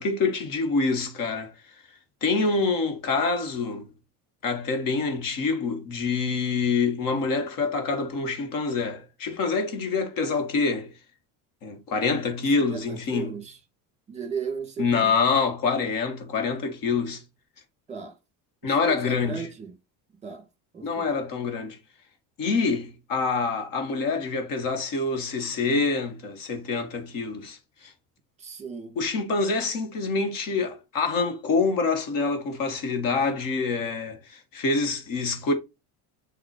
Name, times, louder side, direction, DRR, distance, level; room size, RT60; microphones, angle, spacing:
voice 1, 0.0-1.5 2.2-3.9 4.4-10.9 11.6-13.4 14.8-17.2 18.6-19.5 20.8-21.8 22.4-27.9 29.0-35.5, left 4 dB, 55° left, 1.9 m, -26 dB
voice 2, 12.5-13.6 14.1-15.1 17.9-18.2 18.6-19.8 20.2-20.5 20.7-21.1 22.4-22.5 28.4-29.0, right 6 dB, 15° right, 1.6 m, -36 dB
7.7 x 3.0 x 4.3 m
cardioid pair, 130°, 39 cm